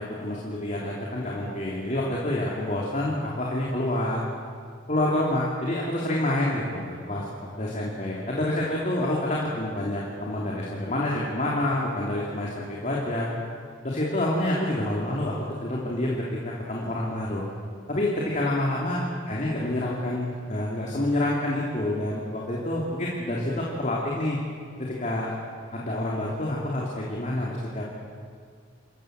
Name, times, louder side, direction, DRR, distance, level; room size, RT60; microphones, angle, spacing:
voice 1, 0.0-4.2 4.9-7.3 7.6-13.3 13.8-15.3 15.6-17.4 17.9-24.4 24.8-25.3 25.7-27.9, left 1 dB, 40° left, -4 dB, 3.0 m, -28 dB
27.0 x 15.0 x 7.7 m, 2.2 s
head